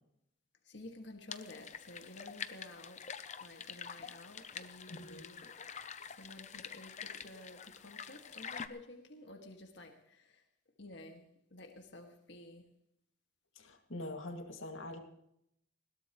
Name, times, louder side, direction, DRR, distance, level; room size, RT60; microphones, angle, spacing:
voice 1, 0.6-3.0 3.4-5.5 6.1-10.5 10.8-11.3 11.5-12.6, left 2 dB, 60° left, 3 dB, 2.1 m, -52 dB
sound 1, 1.3-8.7, left 7 dB, 35° left, 0.7 m, -47 dB
voice 2, 4.9-5.3 13.6-15.0, left 1 dB, 80° left, 4 dB, 2.3 m, -44 dB
20.5 x 17.0 x 3.2 m, 0.75 s
head